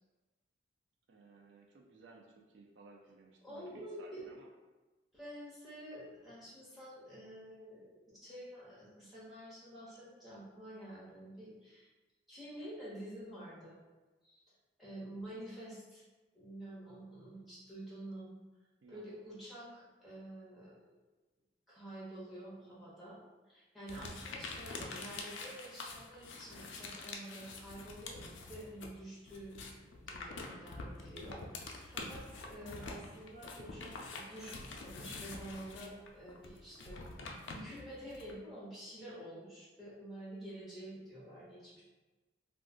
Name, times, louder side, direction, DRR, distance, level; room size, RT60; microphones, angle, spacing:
voice 1, 1.1-4.5 18.8-19.0 23.9-24.1, right 3 dB, 70° right, 0 dB, 0.4 m, -58 dB
voice 2, 3.4-4.3 5.1-11.9 12.3-13.8 14.2-14.5 14.8-16.0 16.3-18.3 18.9-20.8 21.7-23.2 23.4-41.8, right 1 dB, ahead, -10 dB, 1.1 m, -49 dB
sound 1, 23.9-29.0 29.2-38.3, left 3 dB, 75° left, 0.4 m, -46 dB
2.4 x 2.4 x 3.6 m, 1.2 s
head